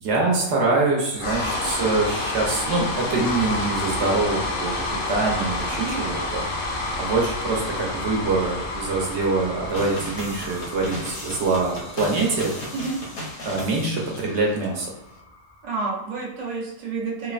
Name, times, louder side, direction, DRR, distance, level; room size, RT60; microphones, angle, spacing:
voice 1, 0.0-6.4 7.0-12.5 13.4-14.9, right 3 dB, 65° right, -2 dB, 1.0 m, -24 dB
sound 1, 1.2-15.3, left 2 dB, 55° left, 0.6 m, -30 dB
sound 2, 9.7-14.7, left 1 dB, 85° left, 1.2 m, -36 dB
voice 2, 15.6-17.3, right 4 dB, 45° right, -4 dB, 0.6 m, -29 dB
3.1 x 2.0 x 2.4 m, 0.97 s
omnidirectional pair, 1.3 m